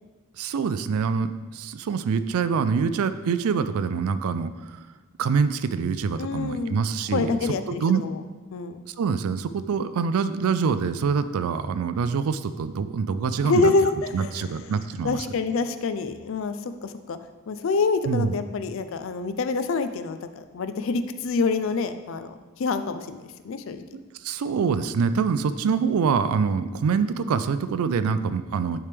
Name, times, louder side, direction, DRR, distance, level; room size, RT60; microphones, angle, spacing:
voice 1, 0.4-4.8 5.2-7.3 7.8-8.0 8.9-13.7 14.1-15.3 18.1-18.3 24.2-28.8, right 5 dB, 75° right, 12 dB, 0.3 m, -25 dB
voice 2, 6.2-6.8 7.1-8.2 8.5-8.9 13.4-14.3 15.0-17.2 17.5-23.8, left 3 dB, 60° left, 10 dB, 0.4 m, -26 dB
9.4 x 3.4 x 3.4 m, 1.3 s
head